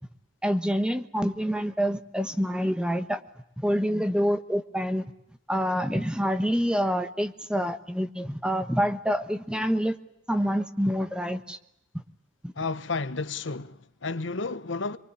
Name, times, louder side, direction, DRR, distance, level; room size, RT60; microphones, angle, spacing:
voice 1, 0.4-3.2 3.6-5.1 5.5-10.0 10.3-11.6 11.9-12.0 12.4-12.5, equal, 5° right, 1.2 m, -27 dB
voice 2, 12.6-15.0, left 3 dB, 75° left, 1.1 m, -32 dB
25.5 x 23.5 x 9.9 m
head